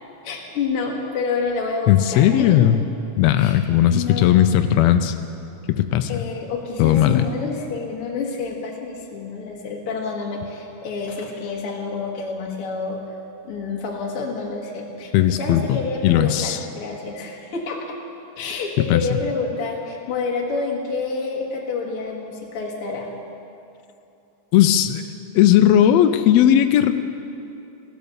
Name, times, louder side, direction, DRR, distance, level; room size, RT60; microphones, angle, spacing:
voice 1, 0.2-2.5 3.4-4.4 6.1-13.0 13.4-18.0 18.4-23.1, left 4 dB, 50° left, -1 dB, 2.2 m, -28 dB
voice 2, 1.9-2.8 3.2-5.1 5.7-6.1 6.8-7.3 15.1-16.6 18.9-19.0 24.5-25.0 25.3-26.9, left 11 dB, 85° left, 9 dB, 1.5 m, -17 dB
15.0 x 12.5 x 6.9 m, 2.7 s
omnidirectional pair, 3.6 m